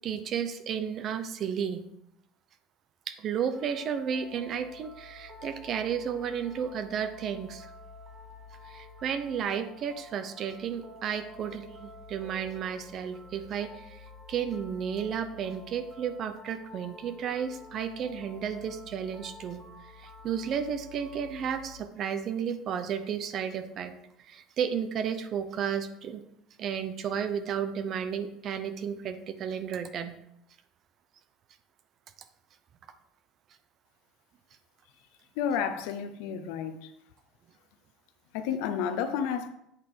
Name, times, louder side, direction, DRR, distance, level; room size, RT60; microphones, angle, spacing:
voice 1, 0.0-1.8 3.1-7.7 8.6-14.0 14.3-19.6 20.0-23.9 24.2-26.2 26.6-30.2, right 8 dB, 45° right, 0.6 m, -33 dB
sound 1, 3.5-21.8, left 2 dB, 20° right, 1.2 m, -49 dB
voice 2, 35.4-36.9 38.3-39.5, left 7 dB, 80° left, 0.6 m, -31 dB
8.1 x 4.9 x 3.7 m
cardioid pair, 140°, 0 cm